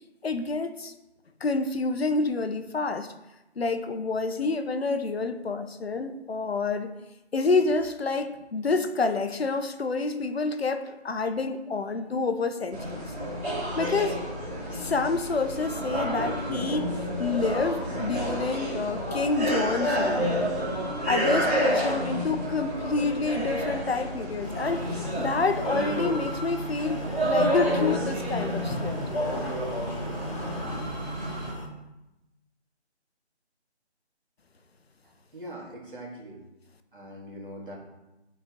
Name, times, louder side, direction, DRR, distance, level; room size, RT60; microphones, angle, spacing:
voice 1, 0.2-0.9 1.4-3.1 3.6-6.9 7.3-13.0 13.8-14.2 14.8-20.3 21.1-29.2, left 4 dB, 65° left, 9 dB, 0.8 m, -28 dB
sound 1, 12.7-31.5, equal, 15° right, 2.3 m, -30 dB
sound 2, 24.4-31.7, right 2 dB, 30° left, 1.1 m, -37 dB
voice 2, 35.3-36.4 36.9-37.8, equal, 50° right, -3 dB, 2.2 m, -41 dB
7.6 x 4.4 x 3.7 m, 0.97 s
figure-of-eight pair, 170°, 34 cm